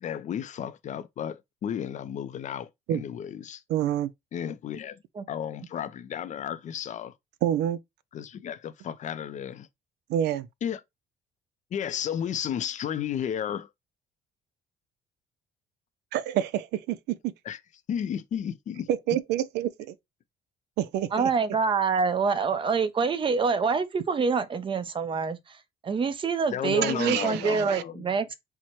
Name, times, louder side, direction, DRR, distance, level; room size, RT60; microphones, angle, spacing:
voice 1, 0.0-3.6 4.3-5.0 5.3-7.1 8.1-9.7 10.6-10.8 11.7-13.7 17.5-17.6 17.9-18.9 26.5-28.1, left 9 dB, 45° left, 0.5 m, -33 dB
voice 2, 3.7-4.1 7.4-7.8 10.1-10.5 16.1-17.3 18.9-19.9 20.8-21.3 26.8-27.8, right 11 dB, 80° right, 0.5 m, -28 dB
voice 3, 21.1-25.6 25.8-28.3, right 5 dB, 30° right, 0.6 m, -26 dB
4.5 x 2.1 x 4.3 m
cardioid pair, 110°, 17 cm